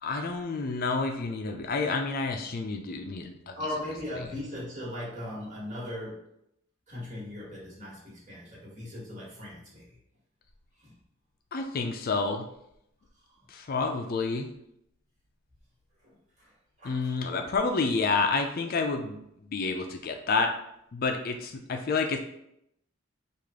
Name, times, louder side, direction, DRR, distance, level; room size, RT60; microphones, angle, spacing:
voice 1, 0.0-3.6 11.5-12.5 13.5-14.5 16.8-19.2 19.5-20.5 20.9-22.2, left 4 dB, 45° left, 5 dB, 0.4 m, -29 dB
voice 2, 3.6-6.2 6.9-10.0 10.8-10.9 16.0-16.5 16.8-17.1, left 1 dB, 35° right, -6 dB, 1.7 m, -38 dB
4.9 x 2.5 x 3.6 m, 0.77 s
head